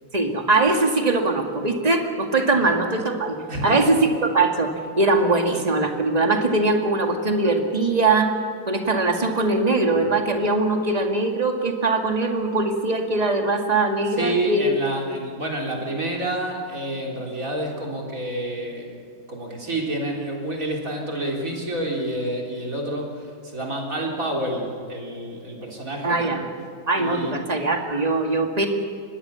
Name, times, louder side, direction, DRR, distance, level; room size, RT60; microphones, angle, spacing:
voice 1, 0.1-8.3 8.7-14.8 26.0-26.4 26.9-28.7, right 2 dB, 20° right, 3 dB, 2.1 m, -21 dB
voice 2, 3.5-3.8 10.0-10.1 14.2-26.3 27.0-27.4, right 1 dB, 45° right, -1 dB, 4.0 m, -29 dB
24.0 x 20.0 x 7.0 m, 2.2 s
omnidirectional pair, 2.0 m